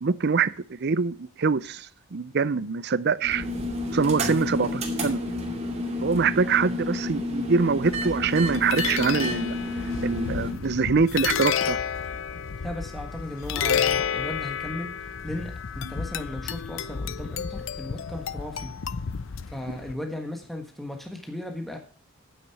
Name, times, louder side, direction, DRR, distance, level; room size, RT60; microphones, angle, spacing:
voice 1, 0.0-3.4 3.9-4.7 5.0-5.2 6.0-9.6 10.0-11.8, right 5 dB, 50° right, 0.5 m, -24 dB
sound 1, 3.2-10.5, left 1 dB, 30° right, 2.6 m, -30 dB
sound 2, 7.8-19.9, left 7 dB, 65° left, 0.6 m, -31 dB
voice 2, 12.6-14.9 15.2-18.7 19.5-21.8, left 1 dB, ahead, 1.5 m, -36 dB
9.4 x 9.0 x 4.7 m
head